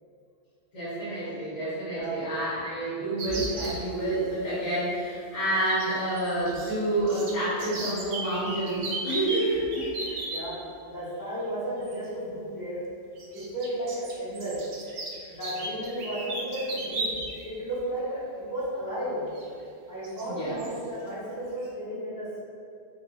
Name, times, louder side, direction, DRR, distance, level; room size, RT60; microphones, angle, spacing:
voice 1, 0.7-9.8 20.2-20.6, right 1 dB, 50° left, -12 dB, 1.7 m, -29 dB
sound 1, 3.2-3.8 5.7-6.7 7.0-10.4 11.8-12.0 13.2-17.4 17.8-17.9 19.3-19.4 20.0-20.3 20.6-20.8, right 2 dB, 65° right, 0.8 m, -35 dB
voice 2, 9.9-10.6 10.8-12.8 13.3-14.6 15.3-17.2 17.4-19.3 19.9-22.4, right 1 dB, 20° left, -11 dB, 0.9 m, -34 dB
2.8 x 2.3 x 3.8 m, 2.4 s
omnidirectional pair, 1.3 m